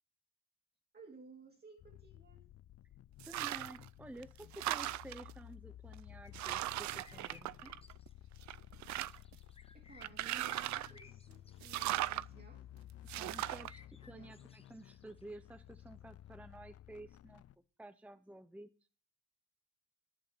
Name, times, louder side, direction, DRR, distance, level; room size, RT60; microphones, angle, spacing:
voice 1, 0.9-2.5 9.7-12.7 14.1-14.4, right 3 dB, 30° right, 2.3 m, -57 dB
sound 1, 1.8-17.5, left 12 dB, 55° left, 0.5 m, -55 dB
voice 2, 3.2-7.7 13.2-17.4 17.8-18.7, right 1 dB, 5° right, 0.6 m, -52 dB
sound 2, 3.2-3.8 4.2-5.3 5.9-6.0 6.3-8.1 8.4-9.3 10.0-11.0 11.6-12.2 13.1-13.7, right 15 dB, 70° right, 0.5 m, -38 dB
sound 3, 6.2-6.7 7.0-8.1 9.0-11.9 13.3-15.9, left 4 dB, 20° left, 1.1 m, -61 dB
11.0 x 6.3 x 7.1 m
cardioid pair, 90°, 30 cm